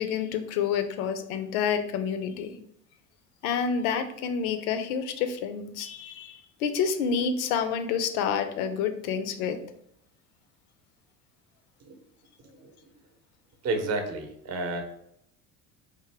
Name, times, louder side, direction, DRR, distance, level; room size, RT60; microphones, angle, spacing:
voice 1, 0.0-2.5 3.4-9.6, left 7 dB, 70° left, 9 dB, 0.7 m, -28 dB
voice 2, 13.6-14.8, right 2 dB, 35° right, 5 dB, 0.8 m, -31 dB
3.7 x 2.6 x 3.3 m, 0.72 s
hypercardioid pair, 70°, 45 cm